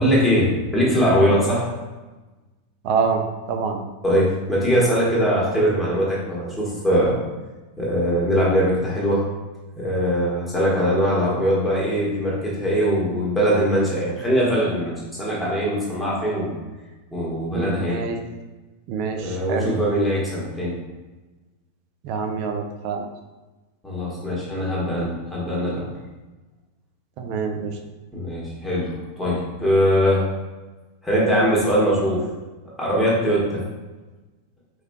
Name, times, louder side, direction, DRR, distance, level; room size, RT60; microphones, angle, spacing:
voice 1, 0.0-1.7 4.0-7.2 7.8-9.2 9.8-16.5 17.1-18.1 19.2-20.8 23.8-25.9 28.1-30.3 31.0-32.3 32.8-33.6, equal, ahead, -6 dB, 1.3 m, -21 dB
voice 2, 2.8-3.2 3.5-3.8 17.5-18.2 18.9-19.7 22.0-23.0 27.2-27.7, right 5 dB, 45° right, 5 dB, 0.5 m, -26 dB
4.8 x 3.0 x 2.2 m, 1.2 s
figure-of-eight pair, 90°, 0 cm